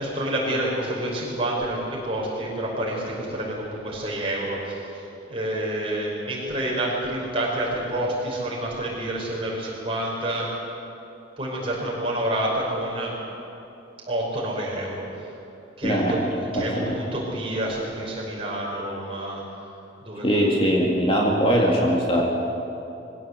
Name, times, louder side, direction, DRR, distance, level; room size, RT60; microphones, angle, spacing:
voice 1, 0.0-10.5 11.4-13.1 14.1-15.3 15.8-16.2 16.5-19.4 20.0-21.2, right 1 dB, 30° right, -4 dB, 5.7 m, -28 dB
voice 2, 15.8-16.3 16.5-17.0 20.2-22.2, equal, 30° left, -1 dB, 2.1 m, -21 dB
22.5 x 16.5 x 8.2 m, 2.9 s
head